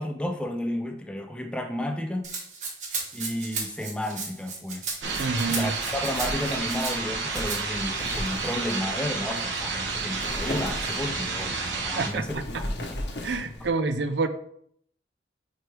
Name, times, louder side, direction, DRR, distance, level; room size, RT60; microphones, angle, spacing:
voice 1, 0.0-2.3 3.1-4.8 5.5-13.0, left 1 dB, 5° left, 5 dB, 0.5 m, -32 dB
Rattle (instrument), 2.2-6.9 7.3-7.6, right 4 dB, 40° right, 1.2 m, -35 dB
Wind, 5.0-13.7, left 1 dB, 70° left, 1.1 m, -38 dB
sound 1, 5.0-12.1, right 4 dB, 90° right, 1.2 m, -31 dB
voice 2, 5.2-5.7 12.0-12.4 13.2-14.3, right 3 dB, 70° right, 9 dB, 0.5 m, -27 dB
4.8 x 4.7 x 4.6 m, 0.68 s
head